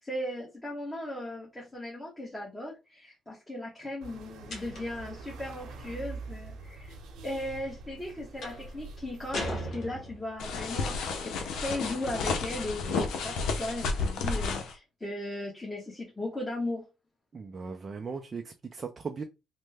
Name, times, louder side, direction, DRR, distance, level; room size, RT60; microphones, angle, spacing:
voice 1, 0.0-7.0 7.2-16.8, left 1 dB, 15° left, 1.1 m, -37 dB
sound 1, 4.0-9.7, right 3 dB, 85° right, 0.8 m, -45 dB
sound 2, 4.5-5.1 8.4-8.7 9.3-10.4, left 1 dB, 60° left, 1.0 m, -37 dB
sound 3, 10.4-14.7, left 4 dB, 80° left, 0.6 m, -31 dB
voice 2, 17.3-19.2, right 5 dB, 40° right, 0.4 m, -38 dB
3.1 x 2.1 x 3.3 m
cardioid pair, 90°, 0 cm